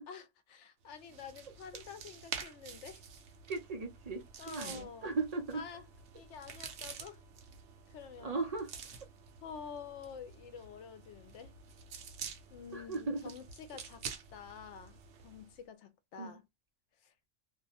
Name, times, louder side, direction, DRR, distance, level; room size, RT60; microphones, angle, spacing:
voice 1, 0.1-3.0 4.4-5.1 5.5-5.8 6.1-7.2 7.9-8.4 9.4-11.5 12.5-14.0 14.3-16.4 17.0-17.1, left 7 dB, 80° left, 0.9 m, -48 dB
sound 1, 0.9-15.6, right 6 dB, 70° right, 0.8 m, -49 dB
voice 2, 3.5-5.6 8.2-8.7 12.7-13.3 16.2-16.4, right 3 dB, 45° right, 0.5 m, -37 dB
2.6 x 2.0 x 2.7 m
omnidirectional pair, 1.2 m